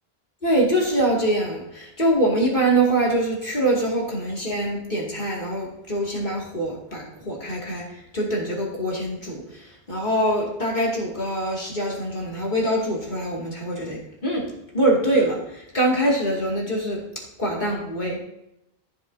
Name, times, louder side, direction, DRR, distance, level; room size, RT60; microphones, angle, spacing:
voice 1, 0.4-17.0 17.4-18.2, right 1 dB, 45° left, -3 dB, 2.6 m, -24 dB
14.5 x 7.3 x 2.8 m, 0.85 s
omnidirectional pair, 1.1 m